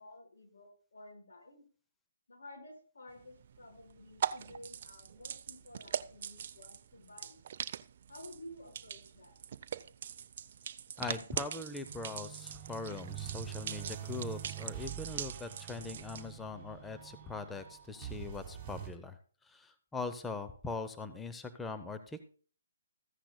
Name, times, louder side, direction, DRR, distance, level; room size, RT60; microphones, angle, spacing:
voice 1, 0.0-1.7 2.3-7.4 8.1-9.4, left 1 dB, 80° left, 1 dB, 5.3 m, -53 dB
sound 1, 3.1-16.3, right 8 dB, 50° right, 0.6 m, -42 dB
voice 2, 11.0-22.2, left 3 dB, 10° left, 9 dB, 0.7 m, -41 dB
sound 2, 11.8-18.9, right 11 dB, 20° right, 3.1 m, -45 dB
14.5 x 10.0 x 2.2 m, 0.42 s
hypercardioid pair, 145°, 0 cm